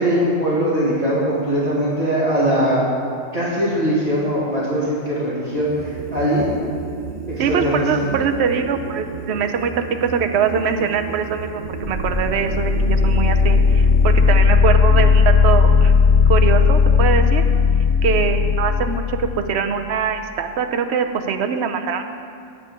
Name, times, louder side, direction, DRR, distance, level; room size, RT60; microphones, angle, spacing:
voice 1, 0.0-2.9 3.3-6.5 7.3-8.1, equal, 30° right, -9 dB, 2.4 m, -21 dB
sound 1, 5.5-16.9, right 5 dB, 85° right, 0.3 m, -34 dB
voice 2, 7.4-15.9 16.2-17.4 18.0-22.0, right 6 dB, 60° right, 6 dB, 1.0 m, -22 dB
sound 2, 11.6-19.4, left 5 dB, 85° left, 2.1 m, -16 dB
18.0 x 8.4 x 3.7 m, 2.3 s
omnidirectional pair, 1.3 m